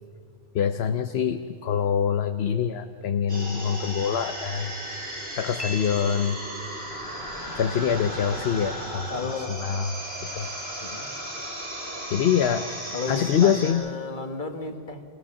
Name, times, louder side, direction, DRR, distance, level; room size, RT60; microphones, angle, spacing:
voice 1, 0.5-4.8 5.4-6.4 7.6-9.1 9.6-9.9 10.3-10.5 12.1-12.7 13.1-13.8, left 8 dB, 80° left, 8 dB, 1.0 m, -24 dB
sound 1, 3.3-13.7, right 1 dB, 75° right, 4.6 m, -35 dB
Piano, 5.6-6.7, left 3 dB, 35° left, 0.8 m, -40 dB
voice 2, 9.1-9.6 10.8-11.1 12.9-15.0, left 3 dB, 50° left, 6 dB, 1.6 m, -33 dB
25.0 x 17.5 x 7.1 m, 2.3 s
omnidirectional pair, 1.1 m